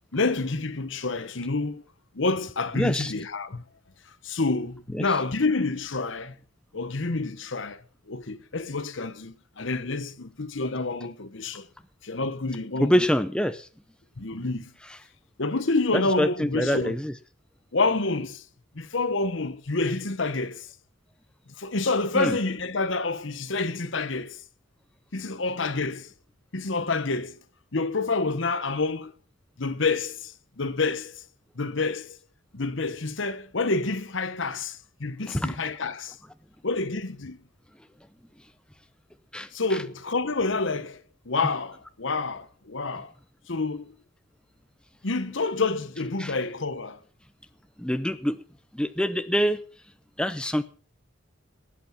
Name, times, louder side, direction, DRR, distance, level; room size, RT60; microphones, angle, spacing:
voice 1, 0.1-1.8 2.1-3.6 4.2-6.4 6.7-11.7 12.0-13.0 14.2-14.7 15.4-17.0 17.7-18.4 18.7-20.7 21.6-24.4 25.1-26.1 26.5-27.4 27.7-29.1 29.6-31.2 31.6-32.2 32.5-36.2 36.6-37.4 39.5-43.1 43.5-43.9 45.0-47.0, left 3 dB, 70° left, 1.1 m, -28 dB
voice 2, 2.7-3.1 5.0-5.1 12.8-13.7 15.9-17.1 22.1-22.4 35.3-35.6 39.3-39.5 46.2-46.3 47.8-48.4 48.7-49.6 50.2-50.6, equal, 5° left, 0.7 m, -25 dB
19.0 x 8.2 x 5.8 m
head